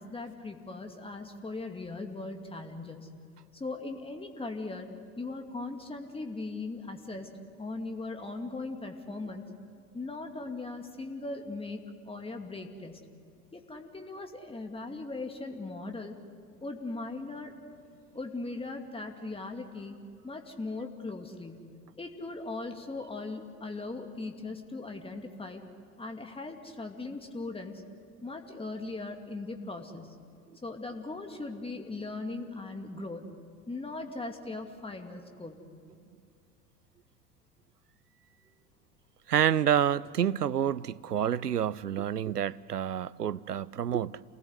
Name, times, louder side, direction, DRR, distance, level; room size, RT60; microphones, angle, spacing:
voice 1, 0.0-3.1 3.5-4.9 5.2-7.3 7.6-9.5 9.9-13.1 13.5-16.2 16.6-17.6 18.1-20.0 20.2-21.7 22.0-25.6 26.0-27.8 28.2-30.2 30.6-33.4 33.7-35.6, left 3 dB, 10° left, 2.5 m, -39 dB
voice 2, 39.3-44.2, right 9 dB, 90° right, 0.5 m, -28 dB
28.0 x 19.0 x 8.0 m
figure-of-eight pair, 70°, 46 cm